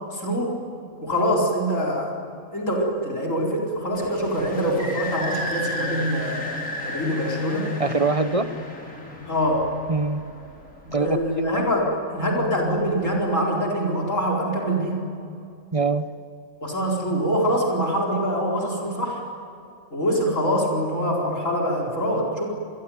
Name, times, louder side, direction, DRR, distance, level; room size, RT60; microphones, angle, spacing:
voice 1, 0.1-0.6 1.0-2.1 2.5-6.5 6.8-7.7 9.3-9.7 10.8-15.0 16.6-19.2 19.9-22.5, equal, 60° left, 0 dB, 4.9 m, -24 dB
sound 1, 3.9-11.3, left 1 dB, 85° left, 4.7 m, -33 dB
voice 2, 7.8-8.5 9.9-10.2 10.9-11.6 15.7-16.1, right 4 dB, 30° right, 10 dB, 0.9 m, -23 dB
28.5 x 21.5 x 9.5 m, 2.6 s
omnidirectional pair, 1.5 m